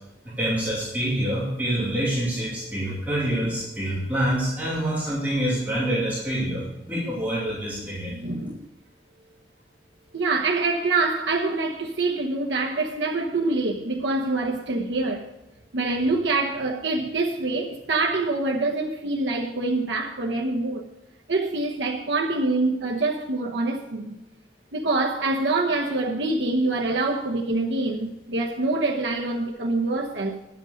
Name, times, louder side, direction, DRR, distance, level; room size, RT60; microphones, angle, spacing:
voice 1, 0.2-8.1, right 1 dB, 10° right, 2.6 m, -26 dB
voice 2, 8.1-8.7 10.1-15.3 15.7-20.8 21.3-24.2 24.7-30.4, right 2 dB, 85° right, 1.0 m, -25 dB
10.5 x 8.2 x 6.4 m
head